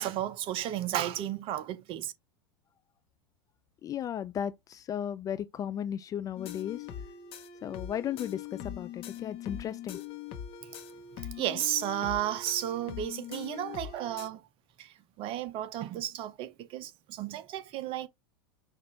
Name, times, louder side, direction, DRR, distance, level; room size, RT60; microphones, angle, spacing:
voice 1, 0.0-2.1 10.6-10.7 11.4-14.4 14.8-18.1, right 12 dB, 45° right, 0.7 m, -33 dB
voice 2, 3.8-6.8 7.6-10.0, left 9 dB, 25° left, 0.3 m, -35 dB
sound 1, 6.4-14.3, left 9 dB, 45° left, 0.9 m, -42 dB
5.9 x 2.5 x 3.2 m
hypercardioid pair, 100°, 13 cm